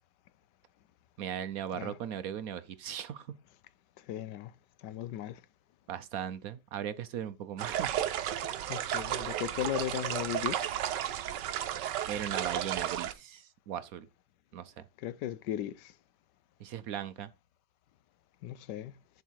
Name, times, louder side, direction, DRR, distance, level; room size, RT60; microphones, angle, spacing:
voice 1, 1.2-3.3 5.9-8.0 12.1-14.1 14.5-14.9 16.6-17.3, right 9 dB, 70° right, 1.0 m, -38 dB
voice 2, 4.1-4.5 4.8-5.4 8.4-10.6 15.0-15.9 18.4-18.9, left 12 dB, 80° left, 1.2 m, -37 dB
sound 1, 7.6-13.1, right 11 dB, 85° right, 1.4 m, -33 dB
11.0 x 3.7 x 4.6 m
omnidirectional pair, 1.8 m